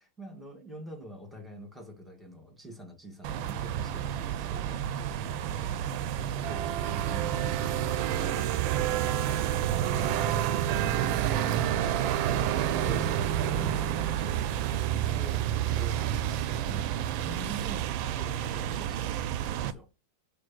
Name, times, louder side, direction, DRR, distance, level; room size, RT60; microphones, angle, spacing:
voice 1, 0.0-4.8 6.1-8.6 12.1-19.2 19.4-19.9, right 1 dB, ahead, 1.5 m, -45 dB
sound 1, 3.2-19.7, right 10 dB, 85° right, 1.4 m, -29 dB
6.8 x 3.3 x 6.1 m
omnidirectional pair, 2.1 m